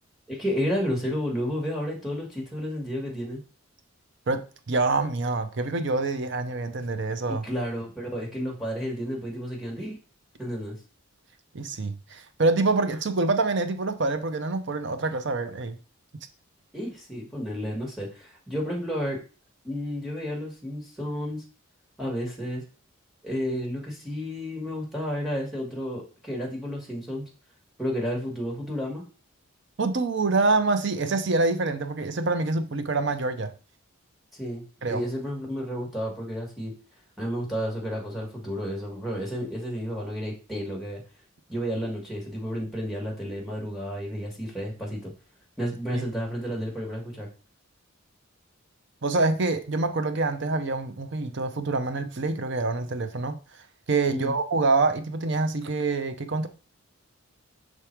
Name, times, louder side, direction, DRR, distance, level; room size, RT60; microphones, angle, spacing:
voice 1, 0.3-3.4 7.3-10.0 10.4-10.8 16.7-19.2 19.6-21.4 22.0-22.6 23.2-27.2 27.8-29.0 34.3-36.7 37.2-41.0 41.5-45.1 45.6-47.3 54.1-54.3, equal, ahead, 1.6 m, -31 dB
voice 2, 4.7-7.5 11.5-15.8 29.8-33.5 34.8-35.0 45.9-46.1 49.0-53.4 53.9-56.5, right 3 dB, 55° right, 0.6 m, -26 dB
5.9 x 3.6 x 4.4 m
head